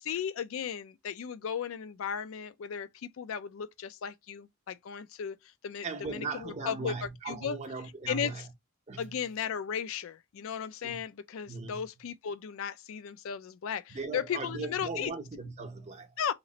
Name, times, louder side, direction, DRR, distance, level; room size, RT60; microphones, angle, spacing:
voice 1, 0.0-7.6 8.1-8.5 9.0-15.1 16.2-16.3, left 7 dB, 70° left, 0.4 m, -36 dB
voice 2, 5.8-8.4 8.9-9.1 10.8-11.0 11.5-11.8 13.9-16.2, right 4 dB, 30° right, 0.6 m, -38 dB
3.0 x 2.4 x 3.9 m
head